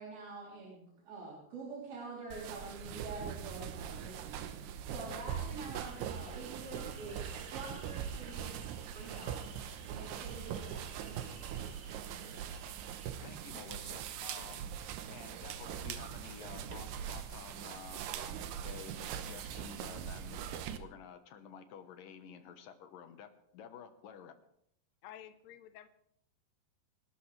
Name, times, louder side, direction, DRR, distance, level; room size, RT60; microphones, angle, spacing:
voice 1, 0.0-9.4 9.8-11.3, right 3 dB, 70° right, -5 dB, 5.4 m, -47 dB
sound 1, 2.3-20.8, right 9 dB, 85° right, 3.0 m, -42 dB
sound 2, 5.8-13.1, right 1 dB, 25° right, 4.3 m, -58 dB
voice 2, 13.2-20.4 20.8-24.4, left 7 dB, 65° left, 8 dB, 2.6 m, -51 dB
voice 3, 25.0-25.9, left 11 dB, 85° left, 10 dB, 1.5 m, -51 dB
27.5 x 13.0 x 3.4 m, 0.73 s
omnidirectional pair, 4.6 m